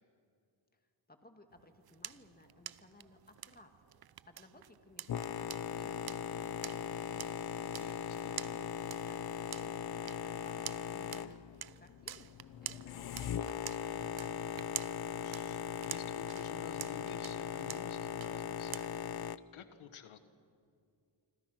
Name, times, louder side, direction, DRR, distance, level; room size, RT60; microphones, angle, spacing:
voice 1, 0.7-3.7 4.3-7.8 8.1-12.3 12.6-14.9, left 2 dB, 20° left, 5 dB, 2.4 m, -61 dB
sound 1, 1.5-19.2, right 10 dB, 55° right, 0.7 m, -49 dB
Boat Water vehicle, 5.1-19.4, left 8 dB, 50° left, 0.7 m, -39 dB
voice 2, 7.8-8.3 15.2-19.2 19.5-20.2, left 8 dB, 90° left, 10 dB, 1.3 m, -51 dB
26.5 x 26.0 x 6.0 m, 2.4 s
cardioid pair, 90°, 47 cm